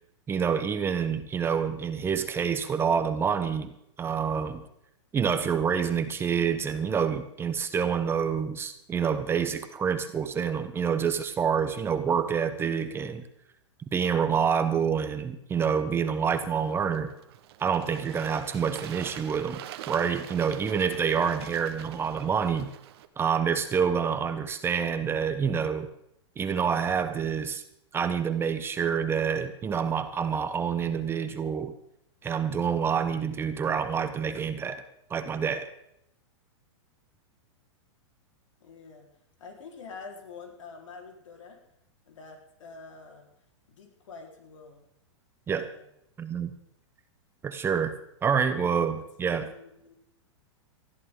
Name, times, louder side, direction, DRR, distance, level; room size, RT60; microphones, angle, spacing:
voice 1, 0.3-4.6 5.1-13.3 13.9-17.1 17.6-19.6 19.9-22.7 23.2-25.9 26.4-27.6 27.9-31.7 32.2-34.8 35.1-35.7 45.5-45.7 46.2-46.5 47.4-48.0 48.2-49.5, right 7 dB, 15° right, 9 dB, 0.9 m, -27 dB
Bird / Water, 16.3-23.1, right 12 dB, 55° right, 1.3 m, -45 dB
voice 2, 38.6-39.1 39.4-41.6 42.0-43.3 43.7-44.8 45.6-45.9 48.9-49.0 49.4-50.0, left 4 dB, 85° left, 2 dB, 4.2 m, -47 dB
20.0 x 14.0 x 3.8 m, 0.78 s
hypercardioid pair, 150°, 16 cm